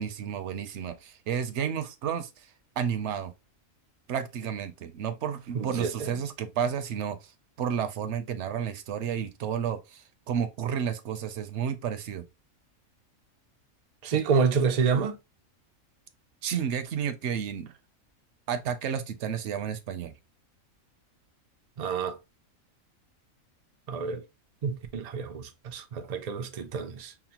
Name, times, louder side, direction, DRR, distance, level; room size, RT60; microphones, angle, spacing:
voice 1, 0.0-2.5 2.8-3.3 4.1-7.3 7.6-12.2 16.4-17.7 18.5-20.1, right 8 dB, 65° right, 0.8 m, -31 dB
voice 2, 5.5-6.1 14.0-15.2 21.8-22.2 23.9-24.2 24.6-27.1, right 5 dB, 80° right, 0.3 m, -28 dB
5.7 x 2.1 x 2.8 m
omnidirectional pair, 1.5 m